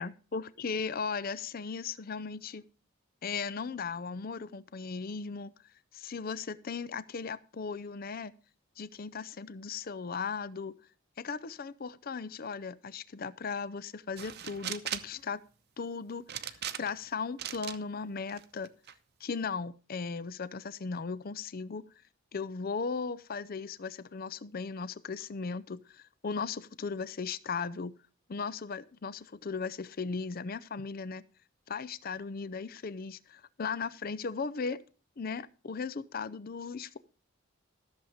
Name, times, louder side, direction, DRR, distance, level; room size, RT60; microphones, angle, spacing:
voice 1, 0.0-2.6 3.2-5.5 5.9-8.3 8.8-10.8 11.2-15.4 15.8-18.7 19.2-21.8 22.3-28.0 28.3-31.2 31.7-34.8 35.2-37.0, left 5 dB, 45° left, 18 dB, 0.5 m, -37 dB
sound 1, 14.2-15.2 16.3-17.0 17.4-17.8 18.3-18.9, right 10 dB, 50° right, 0.8 m, -38 dB
14.0 x 7.2 x 5.0 m, 0.38 s
head